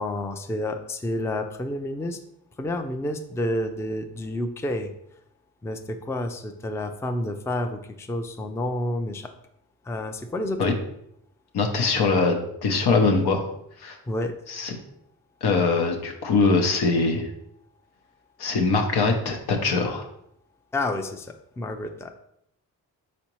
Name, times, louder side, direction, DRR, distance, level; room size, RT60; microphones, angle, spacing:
voice 1, 0.0-2.2 2.6-4.9 5.6-9.3 9.9-10.7 14.1-14.4 20.7-22.1, left 1 dB, 5° left, 6 dB, 0.4 m, -29 dB
voice 2, 11.5-12.4 12.6-13.4 13.8-14.0 14.5-14.7 15.4-17.3 18.4-20.0, left 4 dB, 75° left, 4 dB, 0.8 m, -22 dB
4.2 x 4.0 x 3.0 m, 0.75 s
supercardioid pair, 50°, 39 cm